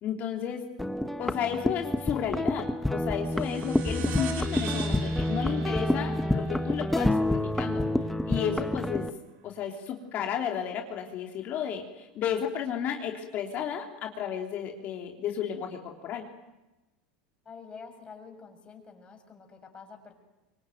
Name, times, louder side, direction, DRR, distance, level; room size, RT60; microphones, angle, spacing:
voice 1, 0.0-0.6 1.2-7.9 8.3-9.0 9.4-16.2, left 8 dB, 45° left, 2 dB, 3.3 m, -33 dB
sound 1, 0.8-9.1, left 1 dB, 5° left, 1.3 m, -28 dB
sound 2, 3.3-8.2, right 8 dB, 60° right, 4.8 m, -43 dB
voice 2, 17.4-20.1, left 5 dB, 25° left, 4 dB, 6.7 m, -47 dB
25.0 x 23.5 x 9.4 m, 1.0 s
supercardioid pair, 105°, 4 cm